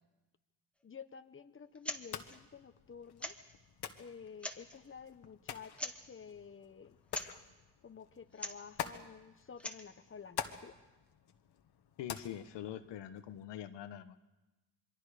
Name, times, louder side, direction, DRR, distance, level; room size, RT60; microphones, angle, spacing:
voice 1, 0.8-3.4 4.0-7.0 7.8-10.8, left 6 dB, 30° left, 10 dB, 1.1 m, -51 dB
sound 1, 1.7-2.0 2.3-2.4 3.2-3.5 4.3-4.8 5.8-6.1 7.1-7.3 8.3-8.6 9.4-9.9, left 1 dB, 5° left, 1.7 m, -42 dB
sound 2, 2.0-13.4, left 8 dB, 70° left, 1.5 m, -48 dB
voice 2, 12.0-14.2, left 10 dB, 85° left, 9 dB, 1.1 m, -44 dB
27.0 x 22.5 x 5.0 m, 1.1 s
cardioid pair, 70°, 41 cm